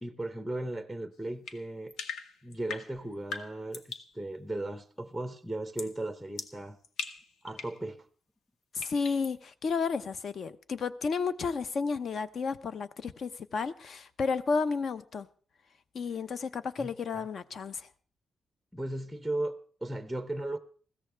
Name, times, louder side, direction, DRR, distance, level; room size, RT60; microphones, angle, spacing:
voice 1, 0.0-1.9 2.4-6.8 7.4-8.1 16.8-16.9 18.7-20.6, right 1 dB, ahead, 0.7 m, -36 dB
sound 1, 1.5-4.1 5.8-6.0 6.4-7.8 8.8-9.3, left 5 dB, 90° left, 1.5 m, -41 dB
voice 2, 8.7-15.3 15.9-17.9, left 5 dB, 50° left, 0.8 m, -32 dB
21.0 x 16.0 x 3.4 m
wide cardioid pair, 175°, 0 cm